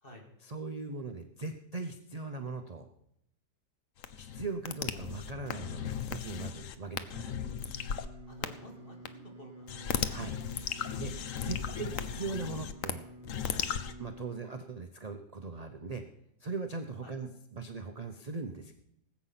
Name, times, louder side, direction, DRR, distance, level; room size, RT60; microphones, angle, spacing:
voice 1, 0.4-2.9 4.2-7.4 10.1-10.4 11.0-11.1 11.4-13.1 14.0-16.0 16.4-18.7, right 3 dB, 45° right, 6 dB, 0.5 m, -39 dB
sound 1, 4.0-8.1 8.4-8.5 9.0-9.1 9.7-12.9 13.2-13.9, left 8 dB, 55° left, 1.0 m, -36 dB
Singing, 7.1-14.3, right 1 dB, 15° right, 2.1 m, -50 dB
voice 2, 8.3-10.0 11.6-11.9 17.0-17.1, left 1 dB, 30° left, 1 dB, 2.8 m, -52 dB
19.0 x 8.3 x 5.8 m, 0.77 s
omnidirectional pair, 1.9 m